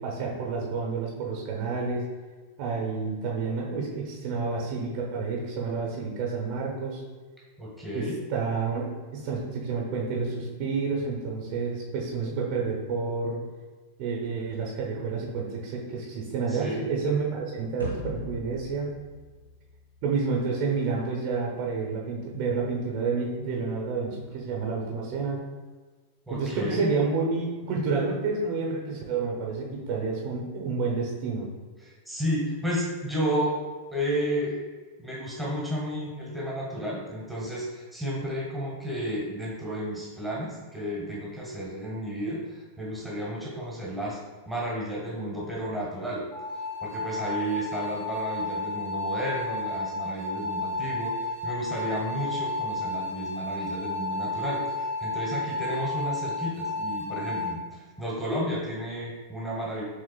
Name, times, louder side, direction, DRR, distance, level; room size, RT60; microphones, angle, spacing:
voice 1, 0.0-2.0 2.6-7.0 7.9-8.8 9.1-13.4 14.0-19.0 20.0-25.4 26.3-31.5, right 4 dB, 45° right, -1 dB, 0.9 m, -29 dB
voice 2, 7.6-8.2 16.5-16.9 26.3-26.9 31.8-33.6 33.9-34.6 35.0-44.2 44.5-46.2 46.8-59.8, equal, 5° right, -5 dB, 1.3 m, -32 dB
sound 1, 17.8-20.3, left 1 dB, 90° right, 1.2 m, -39 dB
sound 2, 46.3-57.5, left 2 dB, 50° left, 1.4 m, -32 dB
6.4 x 3.6 x 2.3 m, 1.4 s
figure-of-eight pair, 90°, 0 cm